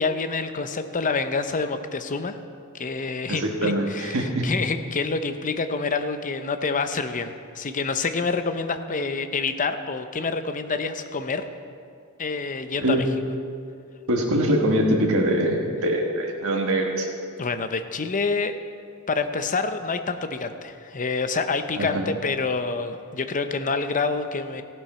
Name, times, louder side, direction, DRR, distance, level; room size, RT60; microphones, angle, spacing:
voice 1, 0.0-2.4 2.7-11.4 12.2-13.1 17.4-18.5 19.1-24.6, left 4 dB, 35° left, 9 dB, 0.7 m, -27 dB
voice 2, 3.3-4.4 12.8-13.0 14.1-17.1 21.8-22.0, right 1 dB, 70° right, 0 dB, 1.5 m, -23 dB
14.5 x 12.0 x 4.4 m, 2.3 s
head